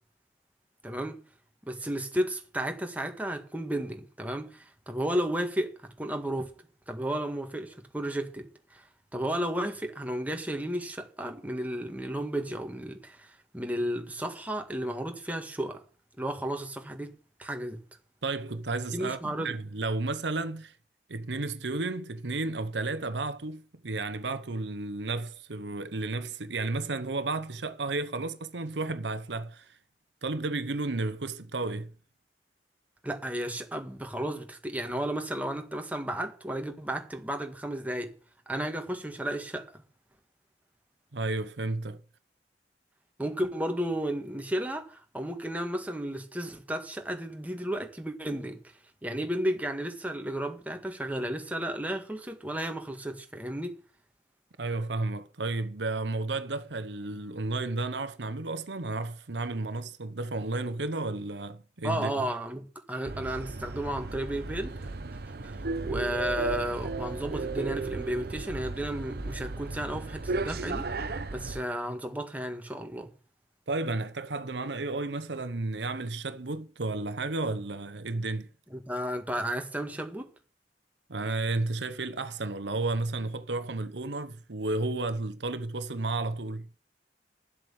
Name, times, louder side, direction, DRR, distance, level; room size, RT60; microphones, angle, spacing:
voice 1, 0.8-1.2 1.6-6.5 6.9-8.8 9.1-15.8 16.2-17.1 17.4-17.8 18.9-19.5 33.0-38.1 38.5-39.8 43.2-48.7 49.0-53.8 61.8-64.7 65.4-65.6 65.8-70.9 71.3-73.1 78.7-80.3, right 1 dB, 10° right, 1.7 m, -33 dB
voice 2, 18.2-20.7 21.1-29.8 30.2-31.9 41.1-42.0 54.6-62.3 73.7-78.5 81.1-86.7, right 2 dB, 85° right, 1.0 m, -32 dB
sound 1, 63.1-71.6, right 3 dB, 60° right, 0.8 m, -35 dB
11.0 x 7.8 x 7.2 m
head